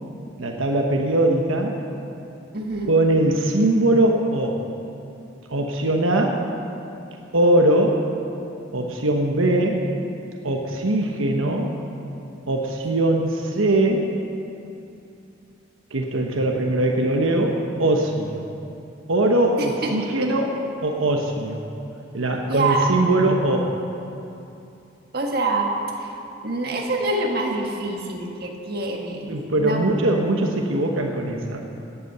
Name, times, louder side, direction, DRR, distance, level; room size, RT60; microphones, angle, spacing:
voice 1, 0.4-1.8 2.9-4.6 5.5-6.4 7.3-8.0 8.7-9.9 10.4-11.7 12.5-14.1 15.9-18.4 19.1-21.6 22.1-23.7 29.3-31.6, right 1 dB, 85° right, 1 dB, 1.1 m, -21 dB
voice 2, 2.5-2.9 19.6-19.9 22.5-22.9 25.1-26.1 26.4-29.9, right 2 dB, 50° right, 0 dB, 1.7 m, -26 dB
17.5 x 8.5 x 6.8 m, 2.7 s
head